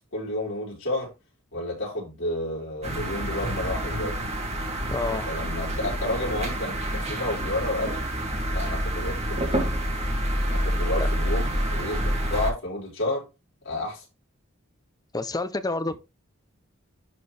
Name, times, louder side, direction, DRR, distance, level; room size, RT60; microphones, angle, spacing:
voice 1, 0.1-1.1 1.5-4.3 5.2-8.1 8.5-9.6 10.5-13.3 13.6-14.0 15.9-16.0, left 1 dB, 65° left, 5.0 m, -31 dB
sound 1, 2.8-12.5, equal, 30° right, 2.1 m, -28 dB
voice 2, 4.9-5.3 7.1-7.2 11.0-11.1 15.1-15.9, left 2 dB, 20° left, 0.6 m, -28 dB
11.0 x 4.6 x 3.3 m
head